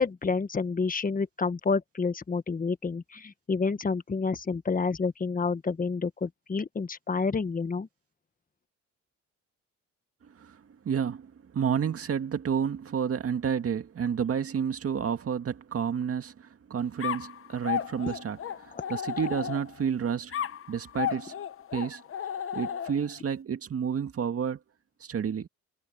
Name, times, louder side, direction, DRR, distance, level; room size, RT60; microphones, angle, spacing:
voice 1, 0.0-7.9 18.7-18.8, left 4 dB, 30° left, 1.5 m, -29 dB
voice 2, 10.3-21.3 21.7-22.0 22.5-24.6 25.0-25.5, right 7 dB, 50° right, 2.0 m, -30 dB
sound 1, 17.0-19.9 20.3-23.2, left 9 dB, 45° left, 1.0 m, -34 dB
cardioid pair, 90°, 30 cm